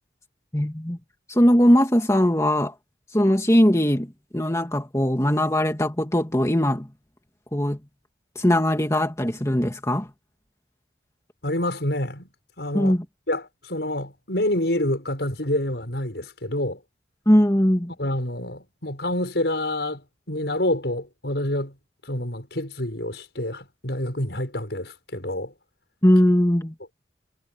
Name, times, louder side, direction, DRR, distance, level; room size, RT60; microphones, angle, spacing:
voice 1, 0.5-1.0 1.3-2.7 3.1-6.9 7.5-7.8 8.4-10.1 12.7-13.0 17.3-17.9 26.0-26.7, equal, 15° left, 2.5 m, -20 dB
voice 2, 11.4-12.3 12.6-13.0 13.3-16.8 18.0-21.8 22.0-25.5, left 1 dB, 75° left, 5.9 m, -27 dB
head